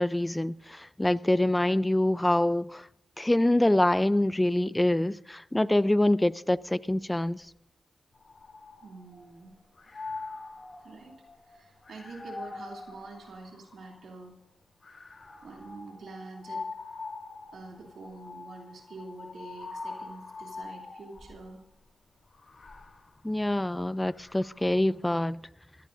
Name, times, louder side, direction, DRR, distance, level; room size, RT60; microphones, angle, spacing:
voice 1, 0.0-2.9 3.2-7.5 23.2-25.4, left 1 dB, 15° left, 0.6 m, -25 dB
sound 1, 8.2-9.3 9.7-14.1 14.8-21.5 22.3-24.9, left 3 dB, 55° left, 7.4 m, -44 dB
voice 2, 8.8-9.5 10.8-11.1 11.4-14.3 15.4-16.7 17.5-21.6, right 3 dB, 75° right, 3.0 m, -46 dB
26.0 x 17.0 x 2.7 m
supercardioid pair, 40°, 0 cm